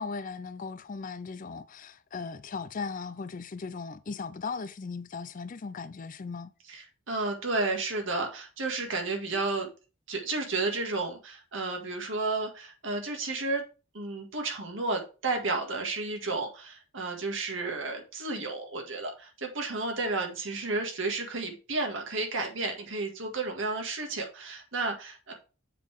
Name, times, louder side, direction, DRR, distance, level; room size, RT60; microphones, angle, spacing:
voice 1, 0.0-6.5, left 4 dB, 40° left, 0.4 m, -37 dB
voice 2, 6.7-9.7 10.1-13.6 13.9-25.3, right 3 dB, 65° right, 1.7 m, -32 dB
7.3 x 4.0 x 4.7 m
head